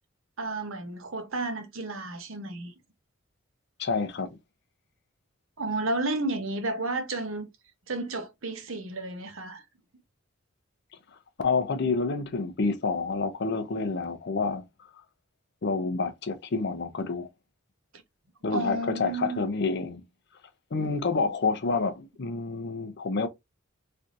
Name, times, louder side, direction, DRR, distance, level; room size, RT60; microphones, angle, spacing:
voice 1, 0.4-2.7 5.6-7.5 7.9-9.6 18.5-19.5, right 2 dB, 75° right, 0.8 m, -32 dB
voice 2, 3.8-4.4 11.4-14.6 15.6-17.3 18.4-20.0 20.7-23.3, left 4 dB, 55° left, 0.6 m, -28 dB
3.3 x 2.7 x 2.5 m
head